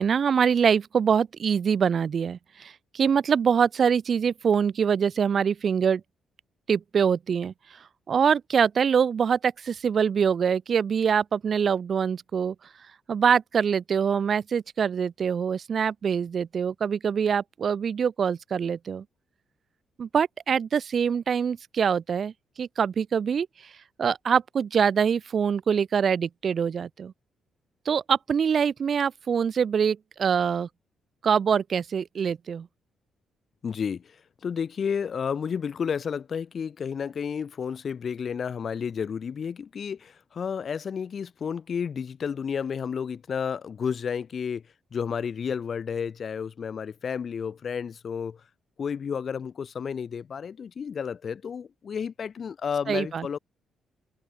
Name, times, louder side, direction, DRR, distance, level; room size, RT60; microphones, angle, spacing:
voice 1, 0.0-6.0 6.7-7.5 8.1-12.6 13.1-19.0 20.0-23.5 24.0-27.1 27.9-30.7 31.2-32.7 52.9-53.3, right 7 dB, 50° right, 0.4 m, -24 dB
voice 2, 33.6-34.2 34.4-44.6 44.9-48.4 48.8-53.4, left 7 dB, 50° left, 0.5 m, -31 dB
cardioid pair, 95°, 0 cm